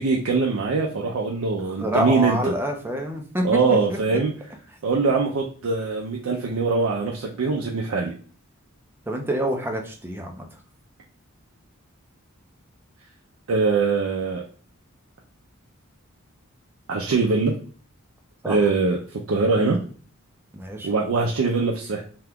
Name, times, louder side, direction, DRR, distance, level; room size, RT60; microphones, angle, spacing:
voice 1, 0.0-2.4 3.4-4.3 4.8-8.1 13.5-14.4 16.9-17.5 18.5-19.0 19.3-19.8 20.8-22.0, right 4 dB, 75° right, -2 dB, 0.5 m, -22 dB
voice 2, 1.8-3.6 4.1-4.2 9.1-10.5 18.4-18.6 19.6-19.8 20.5-20.9, equal, 10° right, 2 dB, 0.5 m, -27 dB
2.9 x 2.3 x 3.5 m, 0.42 s
head